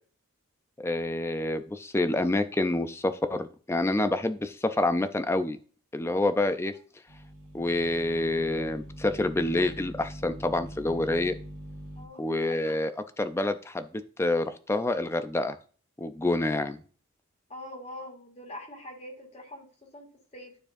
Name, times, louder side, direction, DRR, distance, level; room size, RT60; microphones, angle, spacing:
voice 1, 0.8-5.6 5.9-6.7 7.5-11.3 12.2-12.9 13.2-15.6 16.0-16.8, left 2 dB, 10° left, 9 dB, 0.4 m, -27 dB
sound 1, 7.1-12.1, equal, 75° right, 2.0 m, -43 dB
voice 2, 17.5-20.6, left 1 dB, 30° left, 0 dB, 2.2 m, -44 dB
12.0 x 4.4 x 2.6 m, 0.42 s
head